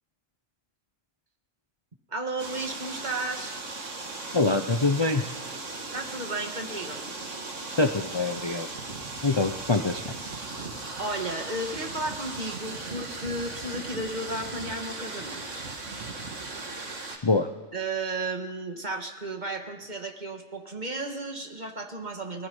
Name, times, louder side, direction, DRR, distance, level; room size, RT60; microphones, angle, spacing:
voice 1, 2.1-3.6 5.7-7.2 11.0-15.7 17.1-17.3 17.7-22.5, right 2 dB, 35° right, 4 dB, 2.0 m, -34 dB
sound 1, 2.4-17.2, right 3 dB, 75° right, 2.3 m, -37 dB
voice 2, 4.3-5.2 7.8-8.7 9.2-10.1 17.2-17.5, left 3 dB, 25° left, 6 dB, 0.7 m, -24 dB
27.0 x 20.0 x 5.5 m, 1.3 s
omnidirectional pair, 1.3 m